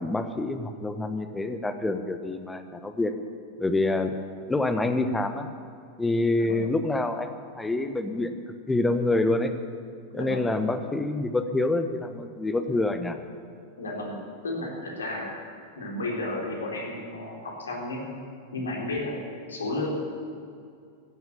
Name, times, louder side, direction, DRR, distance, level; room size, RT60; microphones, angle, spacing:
voice 1, 0.0-3.1 3.6-4.2 4.5-5.5 6.0-8.4 8.7-9.5 10.1-13.2, left 2 dB, 10° left, 9 dB, 1.1 m, -27 dB
voice 2, 10.1-10.5 13.8-15.3 15.8-18.2 18.5-19.9, left 2 dB, 70° left, -1 dB, 3.6 m, -33 dB
14.5 x 9.3 x 8.8 m, 2.3 s
figure-of-eight pair, 90°, 0 cm